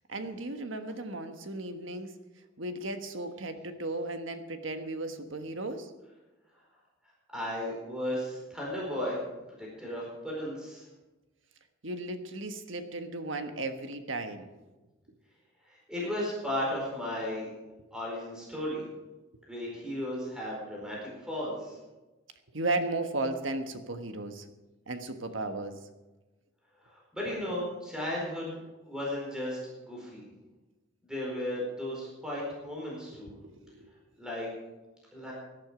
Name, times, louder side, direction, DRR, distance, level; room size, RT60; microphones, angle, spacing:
voice 1, 0.1-2.1 2.6-5.9 11.8-14.5 22.5-24.4 24.9-25.8 33.2-33.9, right 2 dB, 70° right, 7 dB, 1.4 m, -35 dB
voice 2, 7.3-9.2 9.6-10.8 15.6-17.5 17.9-18.8 19.5-21.8 26.8-28.6 28.8-30.3 31.1-33.3 34.2-34.5 35.1-35.3, left 1 dB, 5° right, -4 dB, 4.6 m, -35 dB
18.0 x 11.5 x 5.1 m, 1.1 s
head